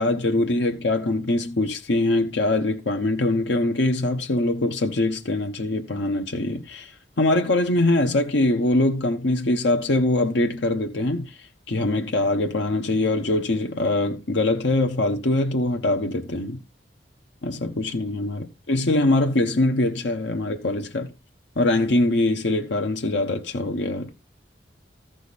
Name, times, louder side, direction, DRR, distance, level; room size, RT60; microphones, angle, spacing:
voice 1, 0.0-6.9 7.2-11.3 11.7-16.6 17.4-21.1 21.6-24.1, left 2 dB, 75° left, 1.0 m, -23 dB
14.0 x 5.1 x 4.1 m
head